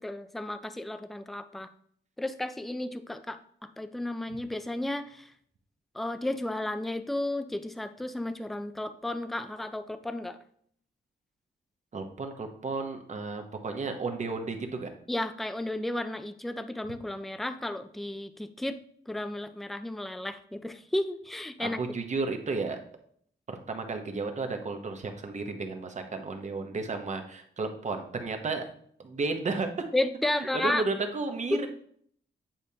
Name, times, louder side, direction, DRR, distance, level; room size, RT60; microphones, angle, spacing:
voice 1, 0.0-1.7 2.2-3.4 3.8-5.3 5.9-10.4 15.1-18.8 19.1-21.8 29.9-30.8 31.5-31.7, left 1 dB, ahead, 10 dB, 0.3 m, -33 dB
voice 2, 11.9-14.9 21.6-22.8 23.5-28.6 29.0-29.9 30.3-31.7, right 3 dB, 40° right, 5 dB, 0.9 m, -33 dB
8.8 x 4.9 x 2.8 m, 0.63 s
wide cardioid pair, 145°, 19 cm